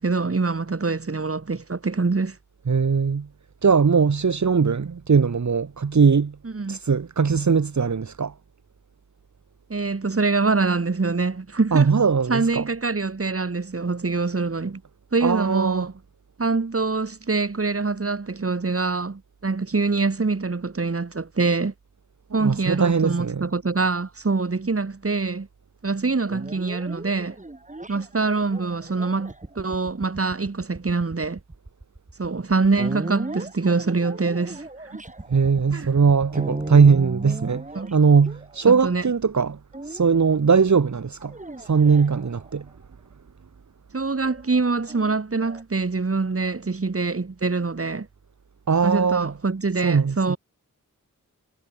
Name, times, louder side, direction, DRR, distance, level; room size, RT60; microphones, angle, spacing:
voice 1, 0.0-2.4 6.4-6.8 9.7-11.9 12.3-14.8 15.1-15.9 16.4-21.7 22.3-25.5 25.8-27.4 27.9-31.4 32.2-34.7 34.9-35.0 35.7-35.9 37.8-37.9 38.7-39.1 43.9-48.1 48.8-50.4, right 3 dB, 45° right, 3.6 m, -24 dB
voice 2, 2.7-3.3 3.6-6.4 6.7-8.3 11.7-12.6 15.2-15.9 22.3-23.5 35.3-37.7 37.9-39.6 39.8-42.7 48.7-49.3 49.8-50.4, right 5 dB, 60° right, 1.8 m, -20 dB
sound 1, 26.3-38.9 39.7-40.3 41.2-42.7 44.2-45.6, right 2 dB, 25° right, 4.9 m, -37 dB
wide cardioid pair, 90°, 32 cm